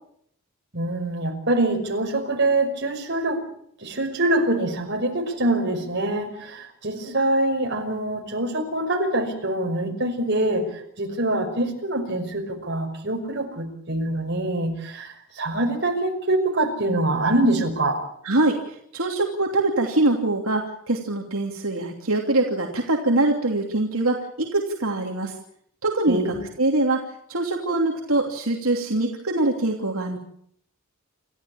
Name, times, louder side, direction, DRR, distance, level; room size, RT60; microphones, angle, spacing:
voice 1, 0.7-3.4 3.8-18.0 26.1-26.4, right 1 dB, 50° right, 3 dB, 5.6 m, -24 dB
voice 2, 18.2-25.3 25.8-30.2, right 2 dB, 80° right, 1 dB, 2.9 m, -23 dB
28.5 x 14.0 x 8.8 m, 0.68 s
head